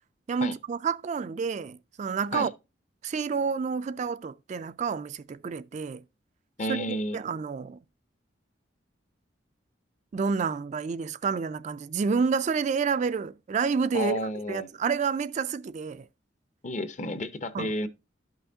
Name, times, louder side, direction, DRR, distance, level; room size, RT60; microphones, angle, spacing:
voice 1, 0.3-2.5 3.0-6.0 6.7-7.8 10.1-14.2 14.5-16.1 17.5-17.7, right 5 dB, 40° right, 0.3 m, -29 dB
voice 2, 6.6-7.2 13.9-14.7 16.6-17.9, left 1 dB, 40° left, 0.7 m, -31 dB
12.0 x 5.6 x 2.7 m
head